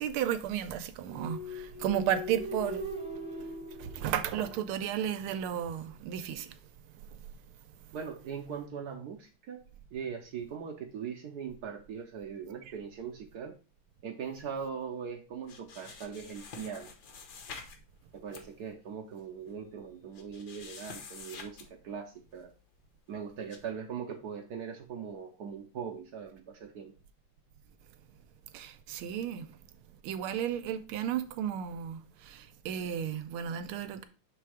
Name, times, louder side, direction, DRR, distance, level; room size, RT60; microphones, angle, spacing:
voice 1, 0.0-2.8 3.8-6.5 28.5-29.5 30.0-34.1, right 10 dB, 85° right, 1.5 m, -33 dB
sound 1, 1.1-4.9, left 1 dB, 5° right, 0.6 m, -40 dB
voice 2, 7.9-9.6 9.9-13.6 14.0-16.9 18.1-22.5 23.1-26.9, right 7 dB, 65° right, 1.0 m, -40 dB
sound 2, 15.4-17.8 18.1-18.4 19.2-19.3 19.5-19.6 20.1-21.7 22.1-22.4 23.5-23.6, left 5 dB, 55° left, 1.4 m, -47 dB
6.2 x 3.4 x 4.8 m
omnidirectional pair, 2.4 m